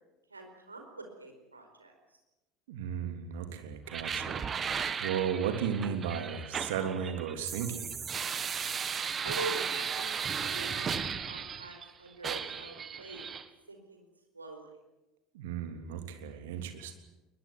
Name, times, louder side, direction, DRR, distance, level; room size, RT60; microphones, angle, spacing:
voice 1, 0.3-1.9 9.2-13.2 13.7-14.1 14.3-14.7, right 3 dB, 85° right, 4 dB, 4.7 m, -44 dB
voice 2, 2.7-4.5 5.0-8.0 15.3-17.0, right 8 dB, 65° right, 7 dB, 3.3 m, -35 dB
sound 1, 3.9-11.9 12.2-13.4, right 6 dB, 30° right, 1.8 m, -35 dB
21.5 x 21.5 x 9.3 m, 1.0 s
figure-of-eight pair, 65°, 0 cm